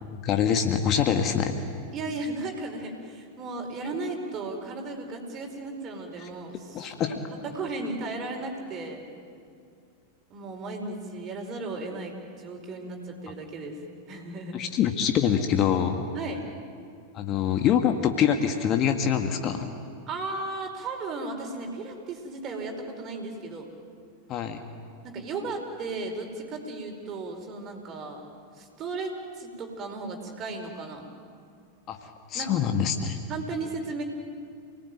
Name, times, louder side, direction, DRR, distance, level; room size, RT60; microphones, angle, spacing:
voice 1, 0.0-1.5 6.2-6.3 6.7-7.2 14.5-16.0 17.1-19.7 24.3-24.6 31.9-33.2, left 8 dB, 35° left, 5 dB, 1.8 m, -25 dB
voice 2, 1.9-7.2 7.4-9.1 10.3-13.8 14.1-14.6 16.1-16.4 20.1-23.7 25.0-28.2 28.5-31.1 32.3-32.6 33.3-34.0, right 3 dB, 30° right, 2 dB, 4.9 m, -35 dB
28.5 x 19.0 x 9.3 m, 2.3 s
figure-of-eight pair, 90°, 0 cm